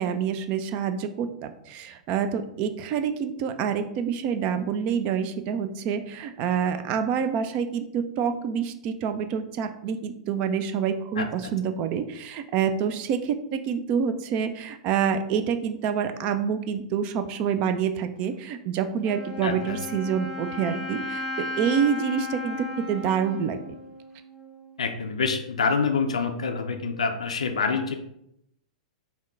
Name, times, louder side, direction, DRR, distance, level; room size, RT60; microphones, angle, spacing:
voice 1, 0.0-23.8, right 7 dB, 35° right, 10 dB, 0.4 m, -27 dB
Wind instrument woodwind instrument, 19.0-24.8, left 2 dB, 5° right, 0.8 m, -35 dB
voice 2, 19.4-19.8 24.8-28.0, left 5 dB, 70° left, 5 dB, 0.4 m, -26 dB
5.4 x 2.3 x 3.6 m, 0.77 s
figure-of-eight pair, 100°, 4 cm